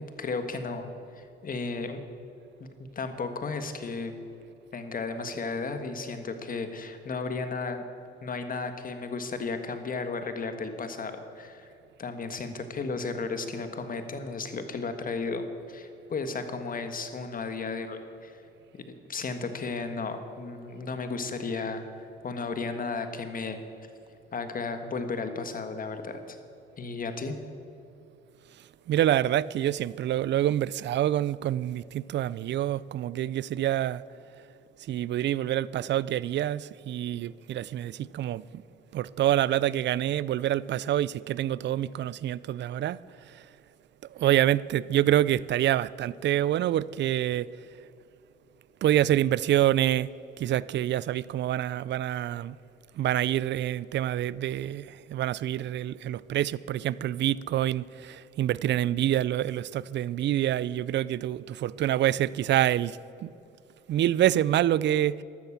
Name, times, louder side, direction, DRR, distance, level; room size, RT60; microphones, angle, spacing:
voice 1, 0.0-2.0 2.6-4.2 4.7-7.8 8.2-11.7 12.0-18.4 18.7-23.6 24.3-26.4 26.8-27.4, left 4 dB, 45° left, 1.7 m, -34 dB
voice 2, 28.9-34.0 34.9-38.6 38.9-43.0 43.3-43.4 44.1-47.5 48.8-50.1 50.4-52.6 52.9-63.3 63.9-65.2, right 12 dB, 65° right, 0.5 m, -26 dB
13.0 x 12.5 x 7.4 m
cardioid pair, 90°, 20 cm